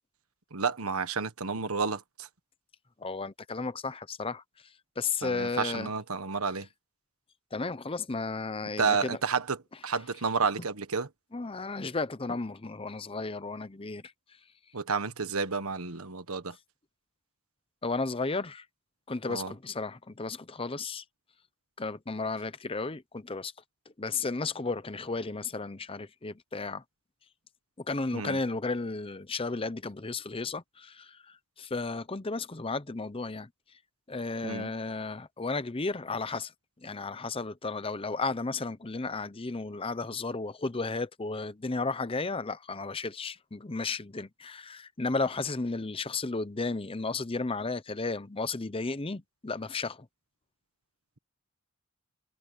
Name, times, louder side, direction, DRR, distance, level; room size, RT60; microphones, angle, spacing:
voice 1, 0.5-2.3 5.2-6.7 8.8-11.1 14.7-16.5 19.3-19.5 28.1-28.4 34.4-34.7, right 5 dB, 75° right, 1.4 m, -31 dB
voice 2, 3.0-4.4 5.0-5.9 7.5-9.2 11.3-14.0 17.8-18.6 19.1-21.0 21.8-23.5 24.0-26.8 27.8-33.5 34.1-36.5 36.8-50.1, left 3 dB, 25° left, 0.7 m, -33 dB
head